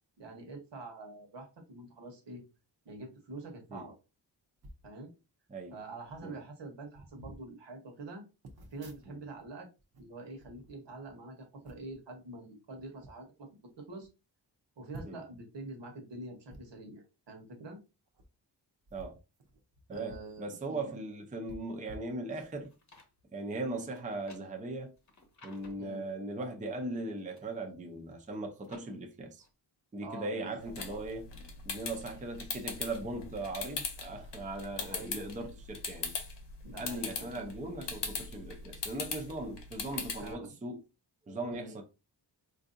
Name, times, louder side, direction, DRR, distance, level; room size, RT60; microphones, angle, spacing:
voice 1, 0.2-2.4 2.8-4.0 4.8-5.1 5.7-8.2 8.7-9.7 10.0-13.5 13.8-14.1 14.8-17.8 19.9-20.9 23.7-23.9 25.8-26.0 30.0-31.0 34.7-35.2 36.6-37.5 40.2-40.5 41.5-41.8, right 2 dB, 75° right, 1.1 m, -46 dB
sound 1, 4.6-4.9 5.7-5.8 6.0-6.3 6.9-7.4 8.4-9.5 9.8-11.1 11.6-12.0 12.7-13.1 13.7-13.8 14.0-14.1 14.9-15.4 16.5-16.6 18.1-18.3 18.8-20.3 20.7-20.8 21.4-22.7 23.1-23.3, right 1 dB, 60° right, 0.7 m, -51 dB
voice 2, 19.9-22.7 23.3-24.9 25.4-29.5 29.9-31.3 31.6-36.1 36.8-40.8 41.3-41.8, right 2 dB, 20° right, 0.4 m, -39 dB
sound 2, 22.4-23.1 23.9-25.9 26.9-27.6 28.1-28.9 29.4-29.5, left 2 dB, 40° left, 0.8 m, -59 dB
sound 3, 30.6-40.3, left 5 dB, 75° left, 0.8 m, -40 dB
4.5 x 2.6 x 2.5 m
wide cardioid pair, 180°, 43 cm